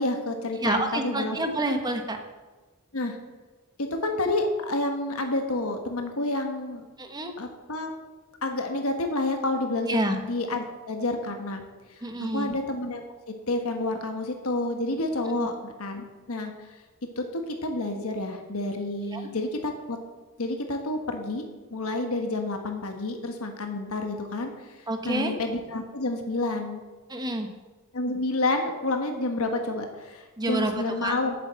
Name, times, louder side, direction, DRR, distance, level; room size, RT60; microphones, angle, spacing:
voice 1, 0.0-1.4 2.9-3.2 3.8-6.8 7.4-7.9 8.4-11.6 11.9-13.0 13.5-16.7 17.2-20.0 20.4-26.8 27.9-31.3, left 2 dB, 75° left, 4 dB, 1.3 m, -29 dB
voice 2, 0.6-2.2 7.0-7.3 9.9-10.2 12.0-12.5 15.3-15.5 19.1-19.3 24.9-25.3 27.1-27.5 30.4-31.2, right 1 dB, 20° right, 5 dB, 1.0 m, -28 dB
8.7 x 7.5 x 7.4 m, 1.3 s
head